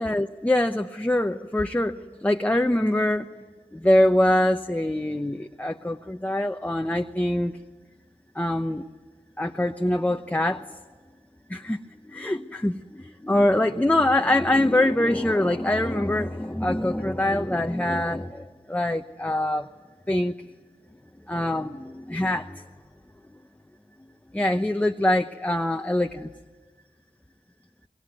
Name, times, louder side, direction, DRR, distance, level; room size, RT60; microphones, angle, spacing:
voice 1, 0.0-1.9 2.2-3.3 3.7-7.5 8.4-8.8 9.4-10.6 11.5-11.8 12.1-12.8 13.2-19.7 20.1-20.3 21.3-22.6 24.3-26.3, left 1 dB, 10° left, 5 dB, 0.9 m, -24 dB
26.5 x 22.0 x 9.4 m, 1.4 s
cardioid pair, 40°, 14 cm